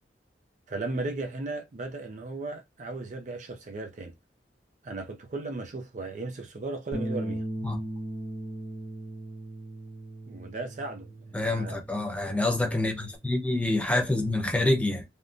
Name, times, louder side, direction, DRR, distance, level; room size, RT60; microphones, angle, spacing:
voice 1, 0.7-4.1 4.8-7.4 10.3-11.8 12.1-12.3 12.6-12.8, right 3 dB, 40° right, 0.4 m, -36 dB
Bass guitar, 6.9-13.2, right 1 dB, 85° left, 1.0 m, -38 dB
voice 2, 11.3-15.0, left 2 dB, 5° left, 0.6 m, -27 dB
3.5 x 2.1 x 2.5 m
head